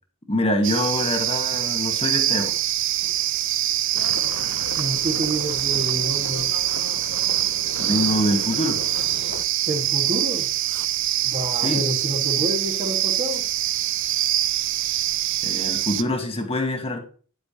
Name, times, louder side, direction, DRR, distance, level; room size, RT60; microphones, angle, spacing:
voice 1, 0.3-2.5 7.8-8.8 11.5-11.8 15.4-17.0, left 1 dB, 30° left, 4 dB, 1.2 m, -25 dB
sound 1, 0.6-16.0, right 13 dB, 60° right, 0.5 m, -24 dB
sound 2, 3.9-9.4, left 5 dB, 70° left, 0.6 m, -37 dB
voice 2, 4.7-6.4 9.6-10.5 11.2-13.4, equal, 40° right, 3 dB, 1.7 m, -28 dB
10.5 x 8.1 x 2.9 m, 0.41 s
head